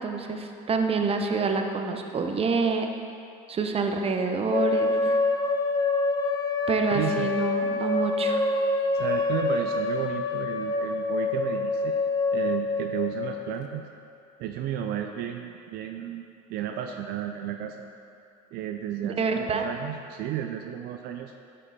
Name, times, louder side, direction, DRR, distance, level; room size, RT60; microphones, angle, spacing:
voice 1, 0.0-2.9 3.5-5.2 6.7-8.4 19.0-19.7, right 4 dB, 35° right, 4 dB, 0.9 m, -27 dB
sound 1, 4.5-13.5, left 3 dB, 20° left, 0.7 m, -26 dB
voice 2, 6.9-7.3 8.9-12.0 12.3-13.8 14.4-17.8 18.5-21.3, right 10 dB, 65° right, 4 dB, 0.5 m, -33 dB
11.0 x 5.3 x 4.2 m, 2.7 s
supercardioid pair, 80°, 18 cm